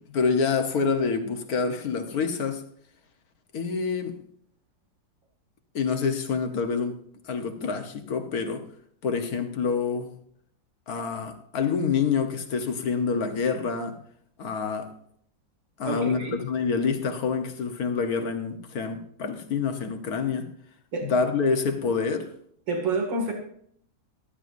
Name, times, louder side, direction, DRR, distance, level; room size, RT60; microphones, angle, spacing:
voice 1, 0.1-2.6 3.5-4.2 5.7-7.0 7.2-8.6 9.0-10.1 10.9-14.0 14.4-14.9 15.8-20.5 21.0-22.3, left 5 dB, 55° left, 1.6 m, -27 dB
voice 2, 15.8-16.4 20.9-21.1 22.7-23.3, right 3 dB, 85° right, 3.0 m, -28 dB
15.5 x 13.0 x 2.6 m
omnidirectional pair, 1.9 m